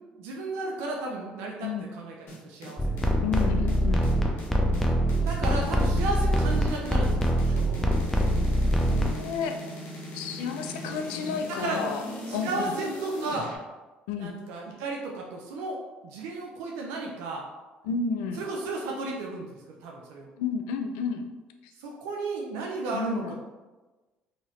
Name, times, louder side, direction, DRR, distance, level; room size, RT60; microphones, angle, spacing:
voice 1, 0.2-2.1 2.4-2.8 5.2-8.0 11.5-11.8 12.3-13.5 14.2-17.4 18.4-20.3 21.8-23.4, right 3 dB, 80° right, -1 dB, 0.5 m, -34 dB
sound 1, 2.3-13.6, left 1 dB, 65° left, 0.9 m, -39 dB
sound 2, 2.8-9.1, equal, 5° left, 0.5 m, -24 dB
voice 2, 3.2-4.1 8.9-9.6 10.1-12.0 12.3-12.7 14.1-14.3 17.8-18.4 20.4-21.2 22.9-23.3, left 6 dB, 85° left, 6 dB, 0.3 m, -31 dB
2.9 x 2.8 x 3.0 m, 1.2 s
supercardioid pair, 70°, 4 cm